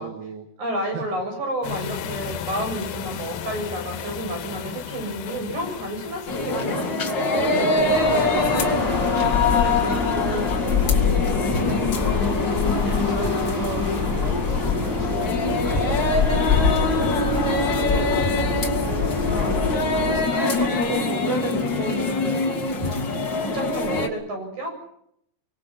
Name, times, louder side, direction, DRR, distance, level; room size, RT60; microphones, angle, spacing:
voice 1, 0.0-0.5 0.8-1.1 6.5-6.9 7.2-8.6 10.7-11.1 11.6-17.1 18.4-18.7 22.7-23.1, right 8 dB, 60° right, 4 dB, 3.4 m, -37 dB
voice 2, 0.6-6.9 7.4-8.9 9.2-11.8 12.8-13.0 17.7-19.8 20.3-22.8 23.3-24.7, right 1 dB, 35° right, 3 dB, 8.8 m, -32 dB
sound 1, 1.6-8.4, left 9 dB, 65° left, 3.1 m, -35 dB
sound 2, 6.3-24.1, left 4 dB, 50° left, 1.3 m, -23 dB
sound 3, 7.9-20.2, left 2 dB, 5° right, 3.5 m, -28 dB
25.0 x 24.5 x 5.8 m, 0.72 s
omnidirectional pair, 6.0 m